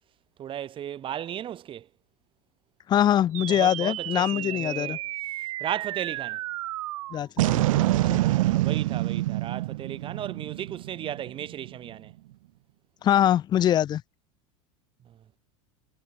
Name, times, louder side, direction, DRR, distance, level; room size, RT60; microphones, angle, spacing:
voice 1, 0.4-1.9 3.5-5.0 5.6-6.4 7.9-12.1 15.1-15.2, right 10 dB, 30° right, 2.9 m, -35 dB
voice 2, 2.9-5.0 7.1-8.2 13.0-14.0, left 11 dB, 25° left, 0.5 m, -24 dB
sound 1, 3.4-11.9, right 17 dB, 85° right, 0.6 m, -28 dB
supercardioid pair, 130°, 17 cm